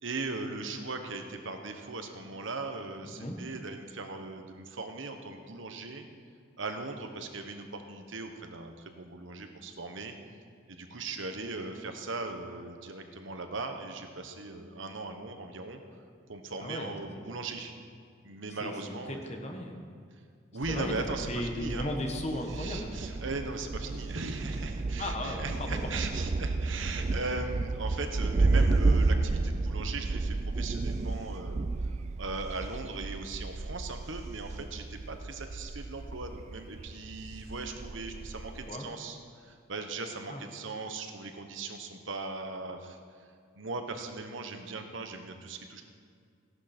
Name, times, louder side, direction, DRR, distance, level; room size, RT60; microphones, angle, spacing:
voice 1, 0.0-6.1 6.6-10.1 10.7-15.8 16.3-17.7 18.2-19.2 20.5-21.3 21.5-21.8 22.5-31.6 32.2-43.0 43.6-45.8, right 3 dB, 75° right, 6 dB, 1.2 m, -39 dB
voice 2, 3.0-3.4 16.6-17.4 18.5-19.8 20.6-22.9 25.0-26.0 38.6-38.9 40.3-40.4, left 1 dB, 35° left, 3 dB, 1.3 m, -36 dB
Thunder, 20.6-38.7, right 3 dB, 35° right, 0.3 m, -32 dB
16.0 x 11.5 x 4.4 m, 2.2 s
head